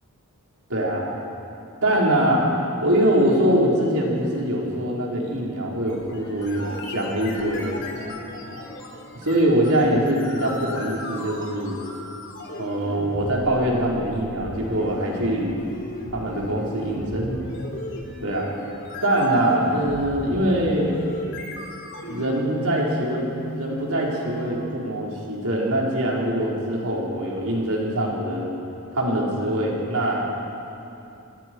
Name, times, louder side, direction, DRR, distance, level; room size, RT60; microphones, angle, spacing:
voice 1, 0.7-1.1 1.8-2.5 2.8-7.7 9.1-11.8 12.6-15.6 16.1-17.4 18.2-18.5 19.0-20.9 22.1-23.3 23.5-28.5 28.9-30.3, right 1 dB, 80° right, -3 dB, 4.6 m, -23 dB
sound 1, 5.9-24.5, left 1 dB, 55° left, 3.4 m, -37 dB
27.5 x 20.0 x 4.7 m, 2.8 s
head